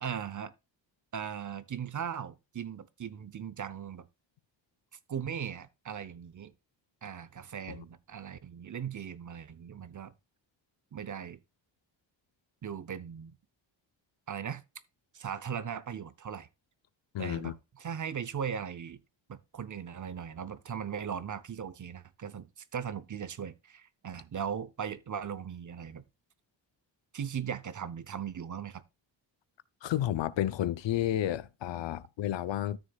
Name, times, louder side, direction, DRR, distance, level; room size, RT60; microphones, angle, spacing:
voice 1, 0.0-0.5 1.1-4.1 5.1-6.5 7.0-10.1 10.9-11.4 12.6-13.3 14.3-14.6 15.1-16.5 17.2-19.0 19.3-26.0 27.1-28.8, right 8 dB, 40° right, 0.7 m, -38 dB
voice 2, 17.1-17.5 29.8-32.8, left 12 dB, 70° left, 0.7 m, -31 dB
13.0 x 6.4 x 2.3 m
cardioid pair, 100°, 46 cm